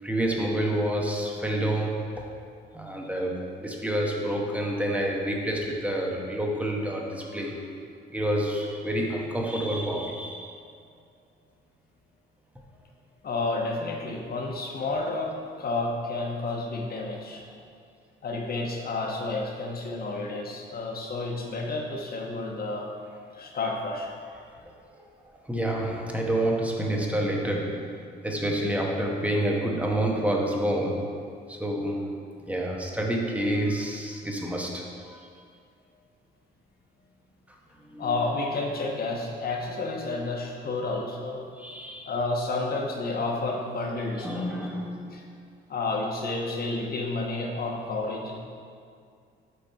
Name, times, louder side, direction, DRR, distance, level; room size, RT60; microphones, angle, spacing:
voice 1, 0.0-2.2 2.7-7.6 8.1-10.5 23.5-23.6 25.5-28.0 28.2-31.1 31.5-32.2 32.4-35.3 37.9-38.3 41.6-42.2 44.2-45.2 46.7-46.8, right 1 dB, 5° right, -1 dB, 1.1 m, -28 dB
voice 2, 13.2-15.3 15.6-17.4 18.2-22.9 23.3-24.1 38.0-41.4 42.1-44.5 45.1-45.2 45.7-48.4, left 3 dB, 50° left, 0 dB, 1.2 m, -30 dB
6.6 x 4.1 x 5.6 m, 2.3 s
cardioid pair, 90°, 20 cm